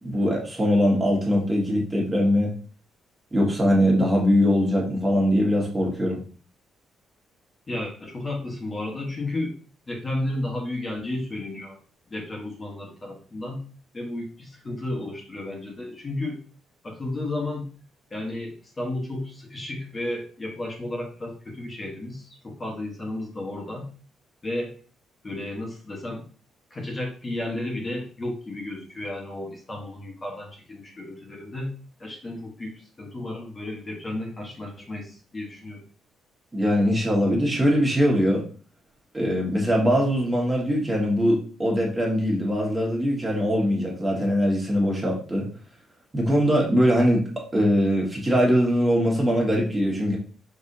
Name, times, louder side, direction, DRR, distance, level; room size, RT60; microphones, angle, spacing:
voice 1, 0.0-2.5 3.3-6.2 36.5-38.4 39.1-45.5 46.1-47.2 47.5-50.2, equal, 15° right, -2 dB, 1.7 m, -22 dB
voice 2, 7.7-9.6 9.9-11.8 12.1-13.6 13.9-16.4 16.8-17.7 18.1-23.9 24.4-24.7 25.2-26.3 26.7-31.7 32.0-35.8, left 1 dB, 30° left, -1 dB, 1.3 m, -33 dB
5.3 x 3.5 x 2.7 m, 0.39 s
cardioid pair, 90°, 0 cm